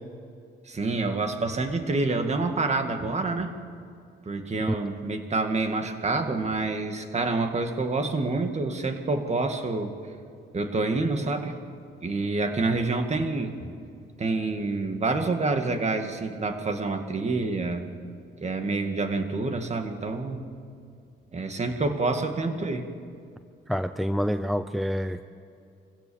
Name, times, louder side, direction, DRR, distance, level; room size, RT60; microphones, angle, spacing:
voice 1, 0.7-3.5 4.3-9.9 10.5-11.6 12.0-13.7 14.2-17.8 18.4-20.5 21.3-22.9, right 3 dB, 35° right, 6 dB, 2.1 m, -27 dB
voice 2, 23.7-25.2, equal, ahead, 10 dB, 0.6 m, -27 dB
25.0 x 16.0 x 7.2 m, 2.3 s
cardioid pair, 90°, 20 cm